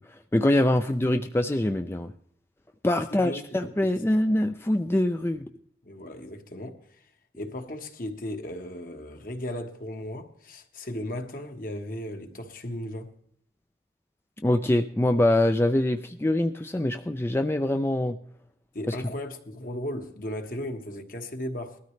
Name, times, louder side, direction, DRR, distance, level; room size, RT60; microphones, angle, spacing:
voice 1, 0.1-2.1 2.8-5.5 14.4-18.2 18.9-19.0, left 1 dB, 15° left, 0.4 m, -24 dB
voice 2, 3.1-3.4 5.8-7.0 7.4-13.1 18.7-21.8, left 1 dB, 50° left, 1.4 m, -36 dB
19.5 x 13.0 x 3.2 m
head